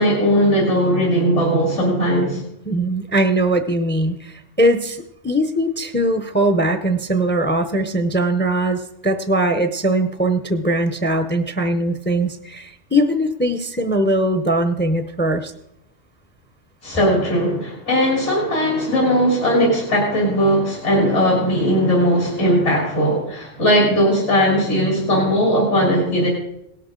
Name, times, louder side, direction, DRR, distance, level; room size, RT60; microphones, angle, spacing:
voice 1, 0.0-2.4 16.8-26.3, equal, 75° left, -3 dB, 3.6 m, -18 dB
voice 2, 2.7-15.5, right 1 dB, 10° left, 8 dB, 0.6 m, -20 dB
17.5 x 12.0 x 3.8 m, 0.79 s
omnidirectional pair, 1.2 m